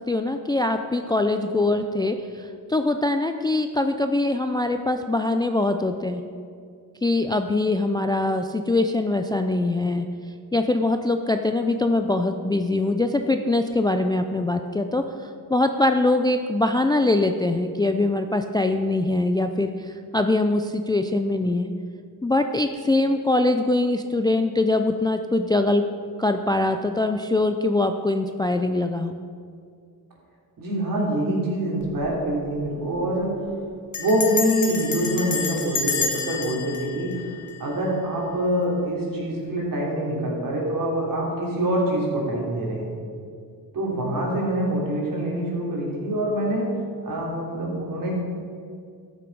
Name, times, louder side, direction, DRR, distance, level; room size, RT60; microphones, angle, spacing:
voice 1, 0.1-6.2 7.0-10.1 10.5-21.7 22.2-25.8 26.2-29.2, left 2 dB, 10° left, 6 dB, 0.4 m, -23 dB
voice 2, 30.6-33.4 34.0-37.2 37.6-42.9 43.7-46.7 47.0-48.1, right 1 dB, 55° right, -3 dB, 3.1 m, -25 dB
Bell, 31.8-32.2 32.4-32.5 32.8-33.1 33.9-38.0, left 5 dB, 45° left, 1.3 m, -30 dB
13.5 x 7.0 x 4.7 m, 2.2 s
cardioid pair, 105°, 39 cm